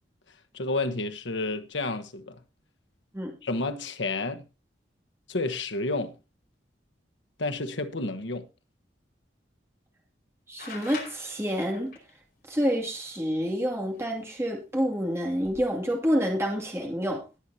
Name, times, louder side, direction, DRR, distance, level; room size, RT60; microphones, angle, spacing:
voice 1, 0.5-2.4 3.4-4.5 5.3-6.2 7.4-8.5, left 2 dB, 80° left, 1.2 m, -30 dB
voice 2, 10.5-11.9 12.5-17.2, equal, 15° right, 2.5 m, -28 dB
sound 1, 10.6-12.1 14.0-14.1 15.3-15.7, left 5 dB, 50° left, 5.0 m, -43 dB
19.5 x 8.1 x 2.8 m
head